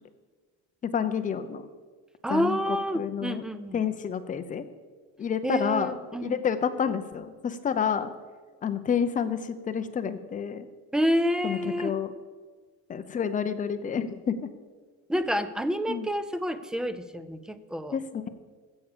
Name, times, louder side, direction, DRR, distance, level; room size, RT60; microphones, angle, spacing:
voice 1, 0.8-1.6 2.3-3.4 3.7-4.6 5.2-6.0 6.2-8.1 8.6-10.7 11.4-12.1 12.9-14.5 15.9-16.1 17.9-18.3, left 7 dB, 25° left, 9 dB, 0.7 m, -29 dB
voice 2, 2.2-3.8 5.4-6.4 10.9-11.9 15.1-18.0, equal, ahead, 12 dB, 0.4 m, -28 dB
15.0 x 7.0 x 6.8 m, 1.5 s
cardioid pair, 155°, 32 cm